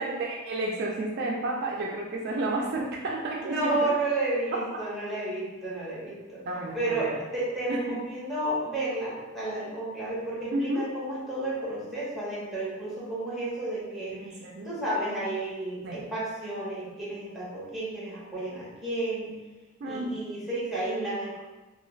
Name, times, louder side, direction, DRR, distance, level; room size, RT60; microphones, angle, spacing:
voice 1, 0.0-4.0 6.5-7.2 7.7-8.0 10.5-10.9 14.1-14.7 15.8-16.0 19.8-20.1, right 2 dB, 50° right, -1 dB, 0.3 m, -31 dB
voice 2, 3.4-14.4 14.6-19.3 19.8-21.4, right 2 dB, ahead, -8 dB, 0.9 m, -32 dB
2.4 x 2.3 x 3.0 m, 1.2 s
head